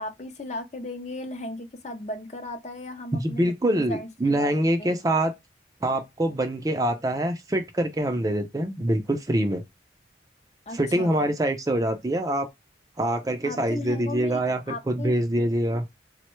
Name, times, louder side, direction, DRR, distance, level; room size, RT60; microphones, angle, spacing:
voice 1, 0.0-4.5 4.8-4.9 10.7-11.3 13.4-15.1, left 2 dB, 40° left, 0.5 m, -36 dB
voice 2, 3.1-5.3 5.8-9.6 10.7-12.5 13.0-15.8, right 1 dB, 20° right, 0.4 m, -25 dB
3.6 x 2.1 x 3.0 m
head